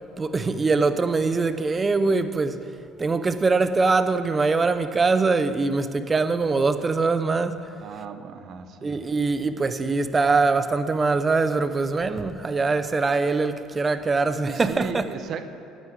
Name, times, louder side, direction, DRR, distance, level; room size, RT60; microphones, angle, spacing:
voice 1, 0.2-2.7 3.0-7.7 8.8-15.1, right 3 dB, 20° right, 0.6 m, -23 dB
voice 2, 7.8-9.0 14.5-15.5, right 6 dB, 50° right, 0.8 m, -36 dB
9.5 x 8.5 x 9.3 m
cardioid pair, 120°, 0 cm